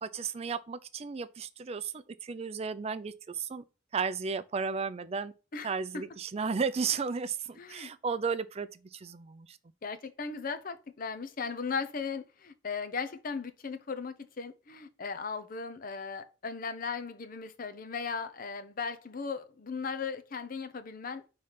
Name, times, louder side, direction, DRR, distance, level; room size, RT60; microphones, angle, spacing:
voice 1, 0.0-3.6 3.9-5.3 5.6-9.6, right 5 dB, 30° right, 0.4 m, -34 dB
voice 2, 7.6-7.9 9.8-21.2, left 5 dB, 45° left, 0.6 m, -37 dB
5.6 x 3.2 x 5.7 m
head